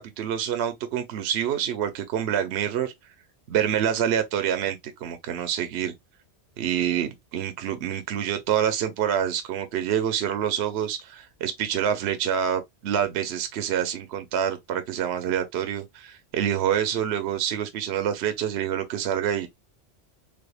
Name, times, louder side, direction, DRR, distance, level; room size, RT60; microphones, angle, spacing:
voice 1, 0.0-2.9 3.5-5.9 6.6-19.5, right 9 dB, 65° right, 0.8 m, -27 dB
3.5 x 3.4 x 2.3 m
omnidirectional pair, 1.2 m